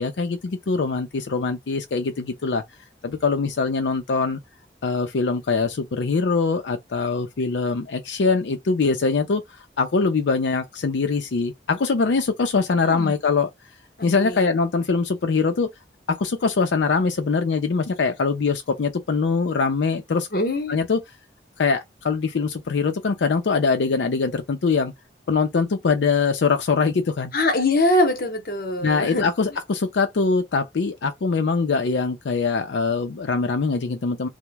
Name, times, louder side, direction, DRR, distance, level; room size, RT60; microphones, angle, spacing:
voice 1, 0.0-2.6 3.0-4.4 4.8-9.4 9.8-13.5 14.0-15.7 16.1-20.3 20.7-21.0 21.6-24.9 25.3-27.3 28.8-34.3, left 4 dB, 85° left, 0.5 m, -23 dB
voice 2, 20.3-20.8 27.3-29.2, left 1 dB, 50° left, 0.8 m, -22 dB
2.9 x 2.1 x 3.3 m
head